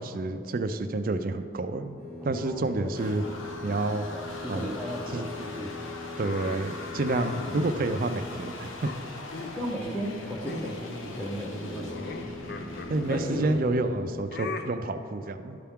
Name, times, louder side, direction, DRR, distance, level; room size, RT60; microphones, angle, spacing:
voice 1, 0.0-3.2 3.6-4.1 4.5-4.7 5.1-5.3 6.2-8.9 12.9-15.6, right 2 dB, 45° right, 9 dB, 0.4 m, -29 dB
sound 1, 2.0-8.8 11.4-14.2, left 3 dB, 30° left, 1.7 m, -41 dB
voice 2, 2.3-3.2 4.1-5.9 9.6-12.3 13.1-13.7, equal, 5° left, -4 dB, 0.6 m, -36 dB
sound 2, 2.4-13.6, left 2 dB, 70° left, 0.9 m, -41 dB
sound 3, 6.2-8.4 8.8-9.7 9.9-10.2 10.5-10.9 11.1-13.6 14.3-14.6, left 3 dB, 50° left, 0.5 m, -39 dB
12.0 x 5.8 x 3.6 m, 3.0 s
head